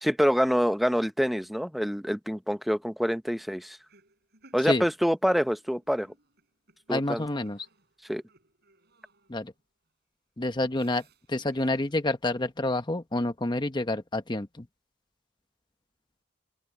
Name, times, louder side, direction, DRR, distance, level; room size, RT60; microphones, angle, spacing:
voice 1, 0.0-3.8 4.5-6.1 6.9-7.2 8.1-8.2, equal, ahead, 0.6 m, -26 dB
sound 1, 3.8-9.6 10.8-11.9, right 2 dB, 55° right, 7.7 m, -61 dB
voice 2, 6.9-7.7 9.3-9.5 10.4-14.7, left 2 dB, 20° left, 1.1 m, -28 dB
open air
head